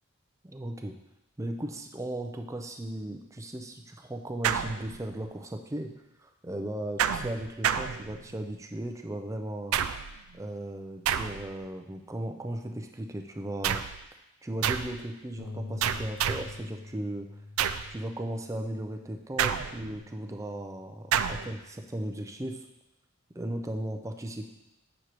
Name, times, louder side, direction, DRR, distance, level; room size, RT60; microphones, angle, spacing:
voice 1, 0.4-1.0 1.4-5.9 6.2-9.8 10.3-13.8 14.4-17.3 17.9-22.7 23.3-24.5, right 1 dB, 15° right, 4 dB, 0.4 m, -36 dB
sound 1, 4.4-5.3 7.0-8.5 9.7-10.3 11.1-11.7 13.6-14.1 14.6-15.0 15.8-16.6 17.6-18.0 19.4-20.0 21.1-21.5, right 8 dB, 80° right, 0.4 m, -29 dB
Bass guitar, 15.4-21.6, left 2 dB, 85° left, 0.6 m, -46 dB
8.0 x 6.3 x 3.0 m, 0.91 s
head